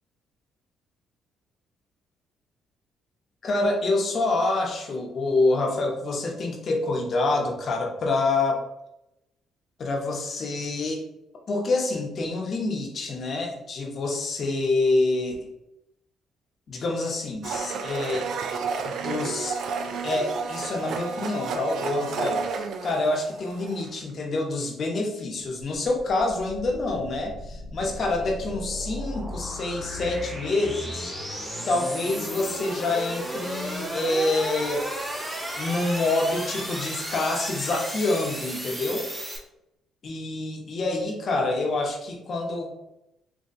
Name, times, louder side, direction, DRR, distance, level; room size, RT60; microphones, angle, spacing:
voice 1, 3.4-8.6 9.8-11.1 11.5-15.3 16.7-18.3 18.8-19.6 20.0-31.1 31.7-34.9 35.6-39.1 40.0-42.7, left 2 dB, 50° left, 1 dB, 0.9 m, -27 dB
Domestic sounds home sounds, 17.4-24.0, right 5 dB, 70° right, 0.4 m, -31 dB
sound 1, 26.2-39.4, equal, 10° right, 1.4 m, -34 dB
4.1 x 2.8 x 2.6 m, 0.86 s
cardioid pair, 80°, 0 cm